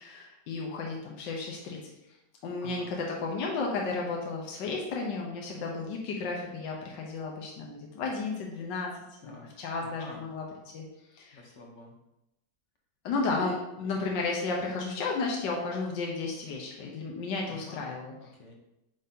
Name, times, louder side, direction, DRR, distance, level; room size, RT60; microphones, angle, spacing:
voice 1, 0.0-1.8 2.4-8.9 9.2-10.4 10.7-10.8 11.1-11.4 13.0-18.1, left 3 dB, 80° left, -1 dB, 1.5 m, -33 dB
voice 2, 2.6-2.9 9.2-9.5 9.8-10.2 11.3-11.9 17.5-18.5, left 3 dB, 50° left, 0 dB, 0.9 m, -48 dB
8.8 x 3.9 x 2.8 m, 0.90 s
omnidirectional pair, 2.0 m